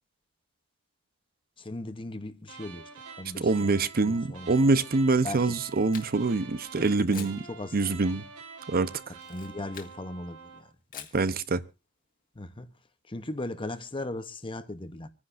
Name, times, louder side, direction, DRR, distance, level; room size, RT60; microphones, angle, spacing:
voice 1, 1.6-2.9 3.2-3.7 4.0-4.7 5.2-5.5 7.1-7.8 9.3-10.7 10.9-11.1 12.4-12.7 13.1-15.1, left 2 dB, 25° left, 0.8 m, -38 dB
sound 1, 2.4-10.7, right 5 dB, 80° right, 1.8 m, -47 dB
voice 2, 3.4-7.4 7.7-8.2 8.7-9.1 11.1-11.6, right 3 dB, 45° right, 0.7 m, -25 dB
Camera, 5.2-6.4 7.1-7.4 9.1-10.0 10.9-11.3, left 8 dB, 40° left, 1.7 m, -46 dB
27.0 x 9.9 x 2.6 m
head